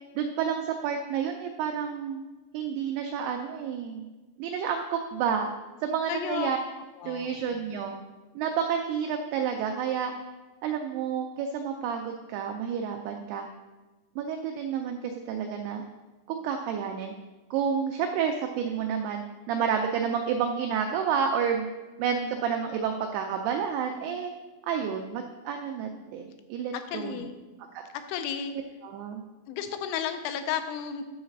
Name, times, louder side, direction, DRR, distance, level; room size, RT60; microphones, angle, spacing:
voice 1, 0.2-2.2 2.5-4.1 4.4-5.5 5.8-6.6 7.1-8.0 8.4-10.2 10.6-13.4 14.2-15.8 16.3-17.2 17.5-21.7 22.0-24.3 24.6-27.3 27.7-27.8 28.8-29.2, right 7 dB, 90° right, 4 dB, 2.2 m, -30 dB
voice 2, 6.1-6.5 7.0-7.3 26.7-27.3 28.1-28.5 29.5-31.0, left 8 dB, 90° left, 8 dB, 3.1 m, -32 dB
10.0 x 4.0 x 6.5 m, 1.2 s
omnidirectional pair, 5.3 m